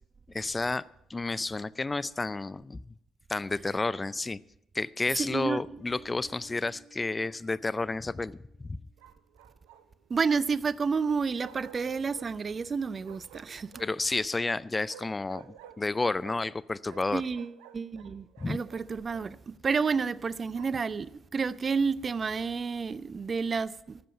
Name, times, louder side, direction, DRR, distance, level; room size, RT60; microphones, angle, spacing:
voice 1, 0.3-0.8 1.1-2.8 3.3-4.4 4.7-8.8 13.8-17.2 18.4-18.6, left 3 dB, 25° left, 0.5 m, -31 dB
voice 2, 5.2-5.6 10.1-13.7 17.1-24.0, right 5 dB, 40° right, 0.5 m, -30 dB
Bass guitar, 5.8-9.3, right 4 dB, 15° right, 5.5 m, -58 dB
Bark, 5.9-6.5 9.0-10.1 11.4-12.3 13.0-14.1 14.9-16.6 16.8-19.3 19.9-20.9, right 10 dB, 80° right, 0.7 m, -53 dB
12.5 x 7.6 x 9.0 m
hypercardioid pair, 50°, 0 cm